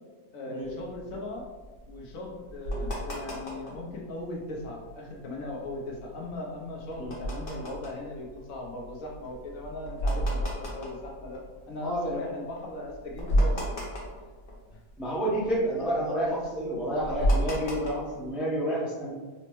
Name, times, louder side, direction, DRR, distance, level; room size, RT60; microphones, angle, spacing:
voice 1, 0.3-1.4 1.9-13.8 14.7-14.8, left 1 dB, 70° left, -1 dB, 1.0 m, -38 dB
sound 1, 0.7-3.9 4.3-4.4 4.6-4.9 5.4-12.0 12.5-12.6 12.9-15.0 15.2-18.3, equal, 45° left, 0.9 m, -31 dB
voice 2, 11.8-12.2 15.0-19.1, right 1 dB, ahead, -7 dB, 0.4 m, -29 dB
4.2 x 2.0 x 2.9 m, 1.3 s
omnidirectional pair, 1.5 m